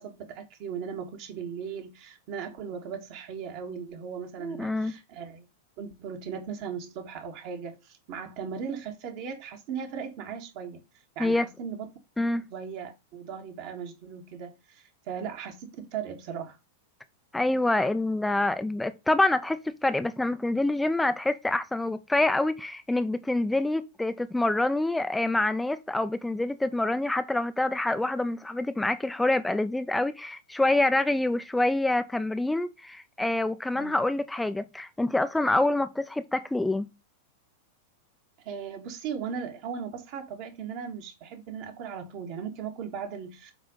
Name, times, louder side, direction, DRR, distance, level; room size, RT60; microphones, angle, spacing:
voice 1, 0.0-5.5 5.8-10.8 11.1-11.9 12.5-16.6 33.7-34.0 38.4-43.5, right 7 dB, 50° right, 1.7 m, -37 dB
voice 2, 4.4-4.9 11.2-11.5 12.2-12.5 17.3-36.9, left 2 dB, 5° left, 0.6 m, -26 dB
7.9 x 3.5 x 5.3 m
figure-of-eight pair, 95°, 0 cm